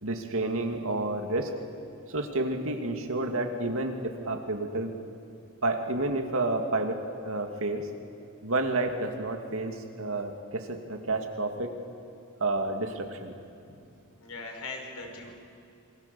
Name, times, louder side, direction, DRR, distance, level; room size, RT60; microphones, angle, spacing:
voice 1, 0.0-1.5 2.1-4.9 5.6-7.0 7.2-7.9 8.4-11.7 12.4-13.4, right 2 dB, 70° right, 4 dB, 2.6 m, -30 dB
voice 2, 14.2-15.3, left 3 dB, 85° left, 2 dB, 5.3 m, -40 dB
27.0 x 24.0 x 7.1 m, 2.5 s
head